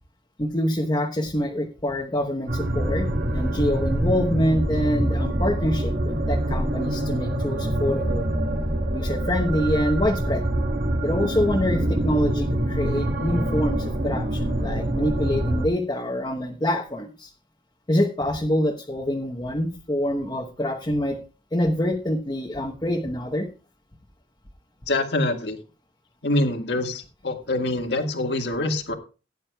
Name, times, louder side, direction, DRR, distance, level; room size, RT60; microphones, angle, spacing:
voice 1, 0.4-8.3 8.9-10.4 11.0-17.3 17.9-21.2 21.5-23.5, left 1 dB, 25° left, 0 dB, 1.1 m, -25 dB
sound 1, 2.5-15.7, right 1 dB, 80° right, 3.1 m, -25 dB
voice 2, 24.9-25.6 26.2-28.9, left 2 dB, 75° left, 5 dB, 1.7 m, -25 dB
17.5 x 9.7 x 2.3 m, 0.32 s
head